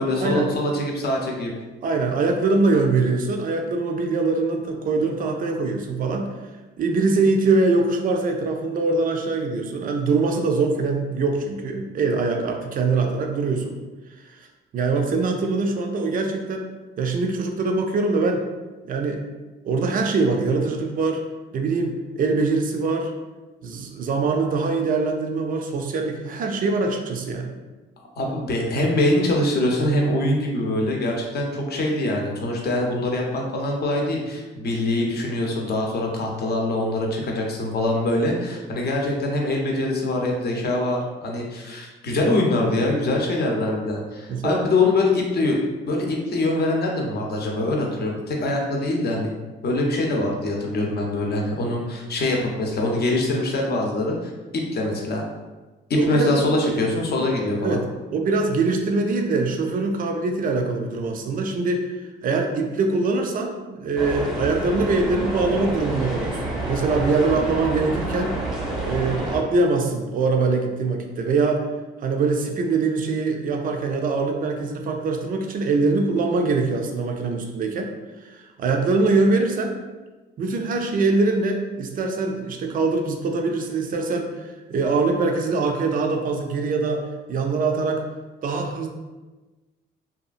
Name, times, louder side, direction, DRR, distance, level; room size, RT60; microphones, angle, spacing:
voice 1, 0.0-1.5 28.2-45.6 45.8-49.3 49.6-55.2 55.9-57.8, left 2 dB, 55° left, 0 dB, 0.6 m, -23 dB
voice 2, 1.8-6.3 6.8-13.8 14.3-14.5 14.7-16.7 17.0-18.4 18.9-19.2 19.6-21.2 21.5-23.1 23.6-27.5 44.3-44.6 56.0-56.4 57.6-57.8 58.1-62.0 62.2-68.4 68.8-71.6 72.0-77.9 78.2-79.7 80.4-87.0 87.3-88.0 88.4-88.9, right 3 dB, 45° right, 3 dB, 0.4 m, -23 dB
sound 1, 64.0-69.4, right 1 dB, ahead, 0.6 m, -28 dB
2.7 x 2.3 x 2.4 m, 1.2 s
cardioid pair, 90°, 20 cm